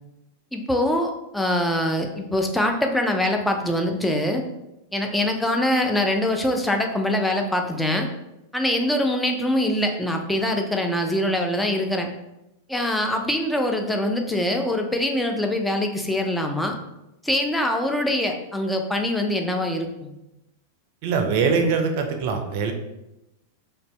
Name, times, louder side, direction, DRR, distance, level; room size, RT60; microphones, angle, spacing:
voice 1, 0.5-4.4 4.9-8.1 8.5-12.1 12.7-16.8 17.2-20.1, left 1 dB, 5° left, 3 dB, 0.4 m, -23 dB
voice 2, 21.0-22.7, right 5 dB, 55° right, 5 dB, 0.4 m, -22 dB
2.5 x 2.1 x 3.1 m, 0.92 s
hypercardioid pair, 100°, 0 cm